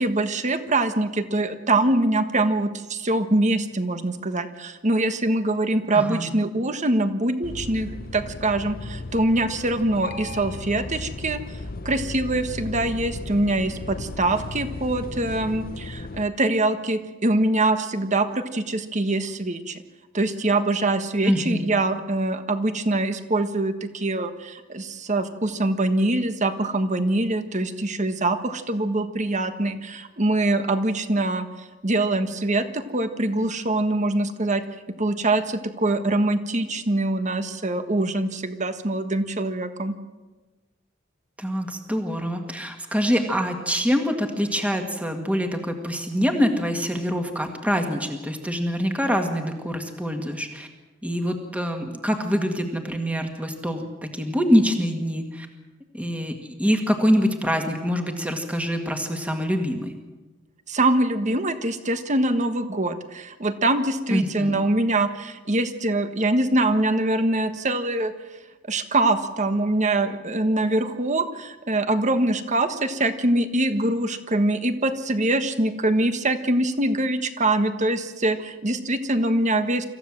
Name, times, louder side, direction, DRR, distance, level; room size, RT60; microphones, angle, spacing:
voice 1, 0.0-11.4 11.8-19.8 20.1-31.4 31.8-34.6 35.0-39.9 60.7-68.1 68.7-79.9, right 2 dB, 40° right, 9 dB, 1.4 m, -24 dB
voice 2, 5.9-6.3 21.2-21.6 41.4-50.7 51.0-55.5 55.9-59.9 64.1-64.6, equal, 5° right, 4 dB, 1.9 m, -25 dB
sound 1, 7.4-16.2, left 2 dB, 50° left, 0.8 m, -36 dB
26.0 x 15.0 x 7.5 m, 1.2 s
head